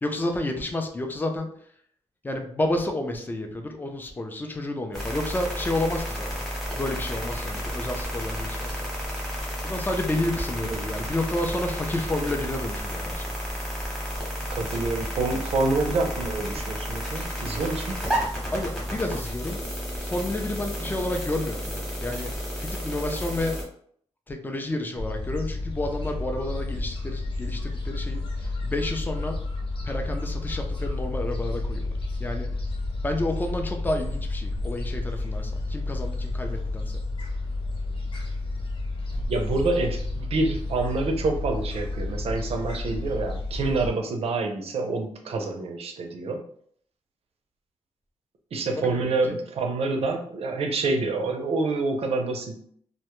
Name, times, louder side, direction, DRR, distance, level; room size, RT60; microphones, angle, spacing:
voice 1, 0.0-1.5 2.2-6.4 6.7-8.9 9.6-13.3 18.5-19.6 20.0-22.3 22.6-23.6 24.3-29.4 29.8-31.8 32.2-32.5 33.0-36.9 48.8-49.4, left 1 dB, 15° left, 4 dB, 0.4 m, -30 dB
sound 1, 4.9-23.6, equal, ahead, 0.9 m, -32 dB
voice 2, 14.5-18.0 39.3-46.4 48.5-52.6, right 3 dB, 60° right, 3 dB, 0.5 m, -27 dB
Gull seagull, 25.0-43.9, left 2 dB, 50° left, 0.7 m, -31 dB
2.1 x 2.0 x 2.9 m, 0.62 s
cardioid pair, 105°, 11 cm